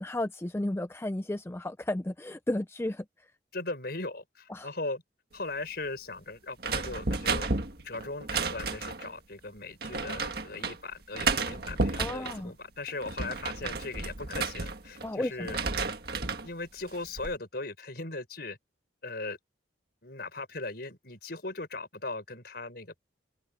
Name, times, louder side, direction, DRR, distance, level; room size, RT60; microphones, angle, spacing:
voice 1, 0.0-3.1 4.5-4.7 12.0-12.5 15.0-15.5, left 1 dB, 15° left, 0.4 m, -33 dB
voice 2, 3.5-5.0 5.3-7.5 7.8-15.6 16.4-18.6 19.0-19.4 20.0-23.0, left 3 dB, 55° left, 5.9 m, -38 dB
sound 1, 6.6-9.1 9.8-10.8 11.1-12.4 12.9-15.1 15.4-16.5 16.9-17.3, right 4 dB, 55° right, 1.7 m, -32 dB
open air
head